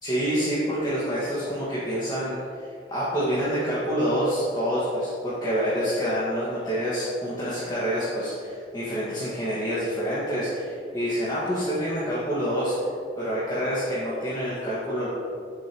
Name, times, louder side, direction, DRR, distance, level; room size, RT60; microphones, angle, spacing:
voice 1, 0.0-12.8 13.2-15.1, equal, 25° left, -10 dB, 1.8 m, -27 dB
10.5 x 7.1 x 3.1 m, 2.3 s
head